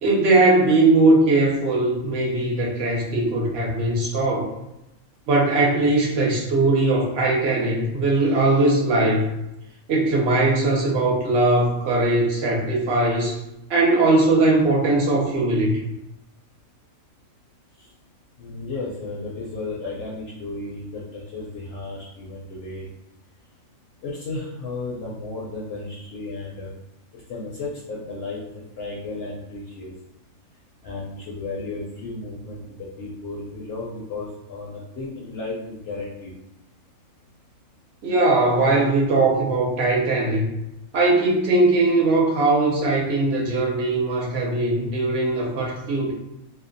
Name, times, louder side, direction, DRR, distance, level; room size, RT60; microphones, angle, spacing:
voice 1, 0.0-4.5 5.3-9.3 9.9-13.4 13.7-15.7 38.0-40.5 40.9-46.1, right 2 dB, 60° right, -2 dB, 0.8 m, -20 dB
voice 2, 18.4-22.9 24.0-26.7 27.1-28.4 28.8-29.9 30.8-36.3, left 3 dB, 65° left, -5 dB, 0.6 m, -34 dB
2.6 x 2.1 x 2.5 m, 0.88 s
omnidirectional pair, 1.4 m